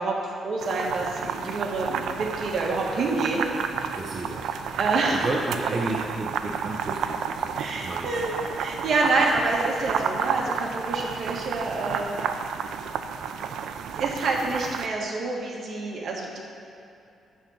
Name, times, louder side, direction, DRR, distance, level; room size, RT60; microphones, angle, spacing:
voice 1, 0.0-3.5 4.7-5.2 7.6-12.1 12.6-12.7 13.4-13.6 13.9-16.4, right 3 dB, 50° right, -2 dB, 1.6 m, -27 dB
sound 1, 0.6-14.9, right 7 dB, 85° right, 0.5 m, -31 dB
voice 2, 3.9-4.5 5.1-8.4, right 2 dB, 30° right, -3 dB, 0.8 m, -32 dB
11.5 x 3.8 x 7.7 m, 2.7 s
cardioid pair, 145°, 0 cm